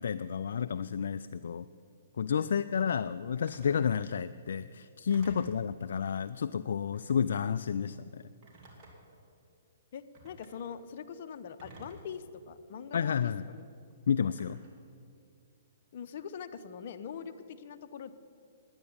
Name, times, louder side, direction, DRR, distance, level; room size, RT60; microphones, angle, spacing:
voice 1, 0.0-1.7 2.2-8.2 12.9-13.5 14.1-14.6, left 7 dB, 70° left, 12 dB, 0.3 m, -31 dB
Telephone, 3.5-3.8 5.1-5.6 6.9-7.2 8.4-9.2 10.1-10.5 11.6-12.2 13.1-13.3 14.4-14.8, right 2 dB, 30° right, 3.3 m, -53 dB
voice 2, 9.9-13.7 14.2-14.3 15.9-18.1, left 7 dB, 55° left, 9 dB, 0.8 m, -43 dB
10.5 x 9.7 x 8.6 m, 2.5 s
hypercardioid pair, 140°, 0 cm